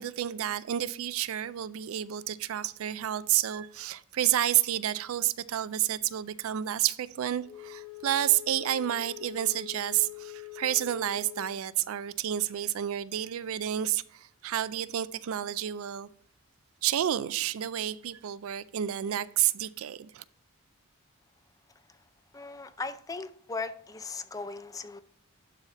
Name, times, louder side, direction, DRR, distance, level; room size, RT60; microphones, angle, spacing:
voice 1, 0.0-16.1 16.8-20.2, right 12 dB, 70° right, 0.4 m, -30 dB
Wind instrument woodwind instrument, 7.4-11.6, left 19 dB, 65° left, 2.0 m, -44 dB
voice 2, 22.3-25.0, left 3 dB, 15° left, 0.4 m, -38 dB
11.0 x 4.1 x 4.0 m
head